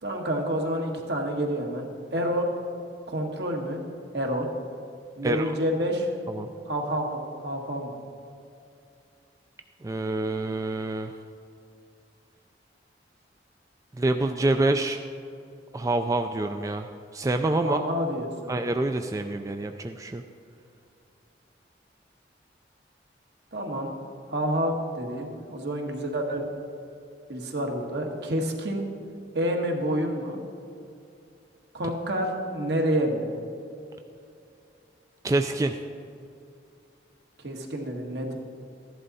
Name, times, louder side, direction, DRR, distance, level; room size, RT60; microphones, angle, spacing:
voice 1, 0.0-2.5 3.1-3.8 4.1-4.5 5.2-6.1 6.7-8.0 17.6-18.5 23.5-23.9 24.3-26.5 27.3-28.8 29.3-30.4 31.7-33.3 37.4-38.4, equal, 70° right, 1 dB, 1.6 m, -28 dB
voice 2, 9.8-11.1 13.9-15.0 15.7-17.8 18.5-20.2 35.2-35.8, right 2 dB, 20° right, 6 dB, 0.3 m, -26 dB
14.0 x 11.0 x 4.1 m, 2.6 s
head